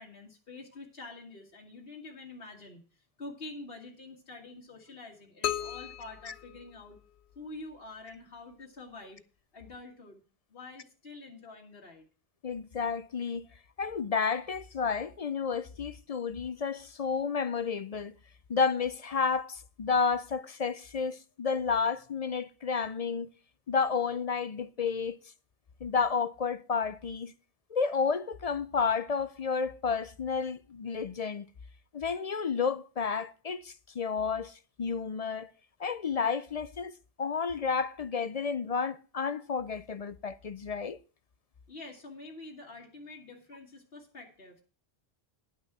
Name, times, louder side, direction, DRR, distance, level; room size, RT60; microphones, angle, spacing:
voice 1, 0.0-2.8 3.2-7.0 7.4-9.2 9.5-10.2 10.5-12.1 41.7-44.6, left 2 dB, 65° left, 2.0 m, -47 dB
sound 1, 5.4-7.3, left 10 dB, 85° left, 0.9 m, -36 dB
voice 2, 12.4-13.4 13.8-18.1 18.5-23.3 23.7-25.2 25.8-27.3 27.7-31.5 31.9-35.5 35.8-36.9 37.2-41.0, left 5 dB, 50° left, 0.5 m, -31 dB
11.5 x 6.2 x 5.9 m
omnidirectional pair, 1.1 m